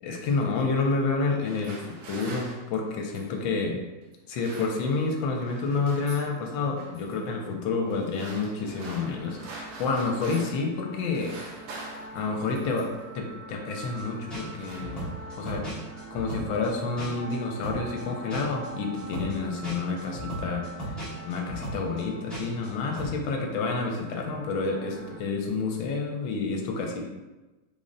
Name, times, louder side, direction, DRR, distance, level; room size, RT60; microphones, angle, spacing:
voice 1, 0.0-1.8 2.1-3.8 4.3-11.4 12.1-12.9 13.1-15.1 15.4-15.6 16.1-21.0 21.2-27.0, left 4 dB, 85° left, 2 dB, 1.3 m, -29 dB
sound 1, 1.2-3.4 4.1-5.2 5.4-6.3 6.8-7.2 7.9-10.7 11.0-13.1 13.8-14.1 14.4-15.4, right 2 dB, 85° right, 1.5 m, -45 dB
sound 2, 8.6-25.2, right 3 dB, 60° right, 1.2 m, -44 dB
sound 3, 14.0-14.1 14.3-17.4 17.6-22.7 23.0-23.2, right 1 dB, ahead, 0.8 m, -37 dB
3.7 x 2.1 x 3.8 m, 1.1 s
omnidirectional pair, 2.1 m